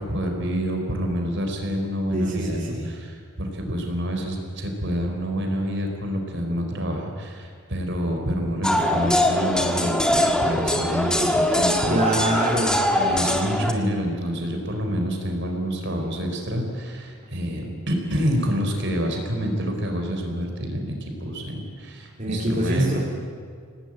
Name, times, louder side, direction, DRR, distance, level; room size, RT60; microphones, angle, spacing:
voice 1, 0.0-12.1 12.9-23.0, equal, 50° right, 3 dB, 4.3 m, -27 dB
voice 2, 2.1-2.9 11.9-12.8 22.2-23.0, right 1 dB, 35° right, -3 dB, 3.8 m, -24 dB
sound 1, 8.6-13.7, left 1 dB, 5° left, 1.7 m, -22 dB
27.5 x 18.5 x 9.0 m, 2.1 s
head